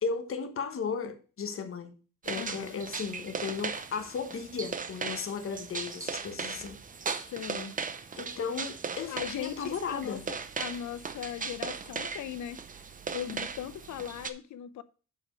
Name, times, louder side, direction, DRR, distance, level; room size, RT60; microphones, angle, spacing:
voice 1, 0.0-1.9 2.2-6.8 8.2-10.2, left 5 dB, 45° left, 1.2 m, -35 dB
sound 1, 2.2-14.3, right 5 dB, 25° right, 0.7 m, -38 dB
voice 2, 2.4-2.8 7.3-7.8 9.1-12.6 13.1-14.8, left 10 dB, 70° left, 0.7 m, -39 dB
7.1 x 5.0 x 5.8 m
cardioid pair, 145°, 30 cm